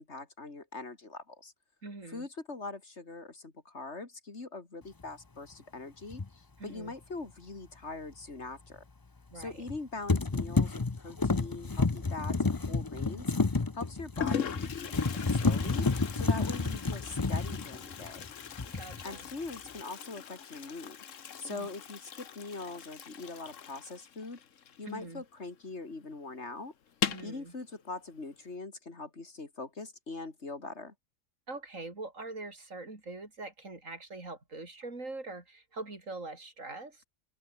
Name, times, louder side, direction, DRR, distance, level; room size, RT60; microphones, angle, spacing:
voice 1, 0.0-1.5 2.1-8.8 9.3-15.9 16.1-18.3 19.0-21.0 21.4-24.4 24.8-26.7 27.2-30.9, left 3 dB, 60° left, 3.2 m, -42 dB
voice 2, 1.8-2.3 6.6-6.9 9.3-9.7 16.3-16.6 18.7-19.3 21.5-21.7 24.8-25.2 27.1-27.5 31.5-37.0, right 2 dB, 80° right, 4.6 m, -43 dB
sound 1, 6.1-6.3 9.4-9.8 10.1-18.3 18.6-19.0, left 3 dB, 20° left, 0.7 m, -30 dB
Toilet flush, 12.7-13.1 13.8-13.9 14.2-25.5 25.7-25.8 26.1-26.2 26.9-27.4, left 8 dB, 75° left, 1.5 m, -40 dB
omnidirectional pair, 1.3 m